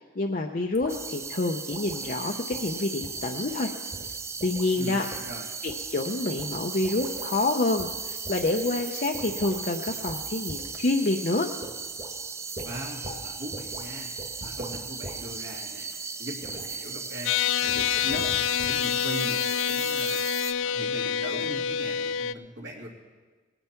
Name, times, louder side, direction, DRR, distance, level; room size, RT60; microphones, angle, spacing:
voice 1, 0.0-3.7 4.4-5.1 5.6-11.5, left 2 dB, 45° left, 2 dB, 0.6 m, -28 dB
sound 1, 0.7-1.0 1.2-1.3 1.7-2.1 2.5-2.7 3.0-3.2 3.5-3.7 3.9-4.8 5.1-5.8 6.4-6.6 6.8-7.3 7.8-8.0 8.3-9.6 9.9-10.2 10.5-10.8 11.1-11.2 11.6-12.2 12.6-13.2 13.5-13.8 14.2-15.2 15.5-15.8 16.4-16.7 17.7-18.8 19.1-19.2, right 1 dB, 35° right, 2.0 m, -41 dB
sound 2, 0.9-20.5, right 5 dB, 15° right, 0.4 m, -37 dB
voice 2, 4.7-5.5 12.6-14.1 14.4-15.9 16.2-17.3 17.6-18.4 18.7-20.2 20.6-22.9, equal, 75° right, -3 dB, 2.8 m, -39 dB
sound 3, 17.3-22.3, left 9 dB, 85° left, 0.3 m, -27 dB
19.0 x 9.0 x 4.5 m, 1.3 s
head